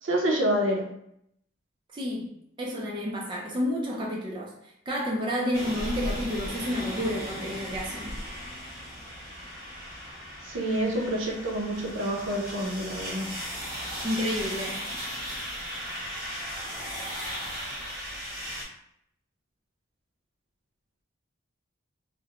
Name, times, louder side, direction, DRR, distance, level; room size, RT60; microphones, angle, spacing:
voice 1, 0.0-0.9 10.4-13.3, right 1 dB, 75° right, 0 dB, 0.6 m, -27 dB
voice 2, 1.9-2.3 2.6-4.5 4.9-8.1 14.0-14.8, equal, 25° right, -2 dB, 0.3 m, -30 dB
sound 1, 5.5-18.6, equal, 45° right, 1.1 m, -36 dB
2.4 x 2.0 x 2.8 m, 0.73 s
head